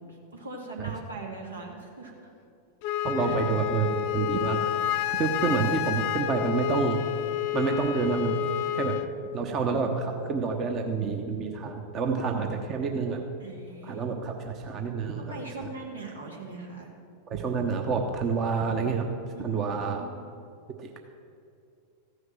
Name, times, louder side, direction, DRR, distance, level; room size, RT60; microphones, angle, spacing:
voice 1, 0.1-2.3 3.2-3.3 13.4-14.0 15.2-16.9 19.3-20.2, right 3 dB, 80° right, 0 dB, 2.1 m, -41 dB
Wind instrument woodwind instrument, 2.8-9.1, left 12 dB, 45° left, 0.6 m, -29 dB
voice 2, 3.0-4.6 5.1-7.0 7.5-8.4 8.7-9.0 9.3-13.3 13.9-15.7 17.3-19.1 19.4-20.0 20.8-21.0, right 5 dB, 30° right, 3 dB, 1.0 m, -28 dB
14.5 x 6.4 x 7.4 m, 2.5 s
figure-of-eight pair, 90°, 0 cm